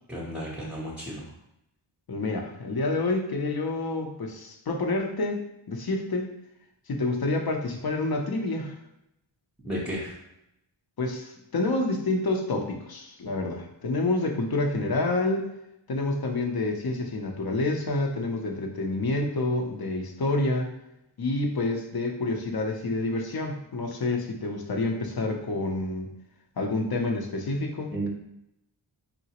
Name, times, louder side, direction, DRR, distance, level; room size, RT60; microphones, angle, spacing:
voice 1, 0.1-1.3 9.6-10.2 27.9-28.1, right 1 dB, ahead, -6 dB, 0.7 m, -33 dB
voice 2, 2.1-5.4 5.7-6.3 6.9-8.7 11.0-15.5 15.9-20.7 21.2-26.1 26.6-28.1, left 2 dB, 50° left, 2 dB, 0.6 m, -28 dB
3.9 x 2.1 x 2.8 m, 0.83 s
wide cardioid pair, 45°, 48 cm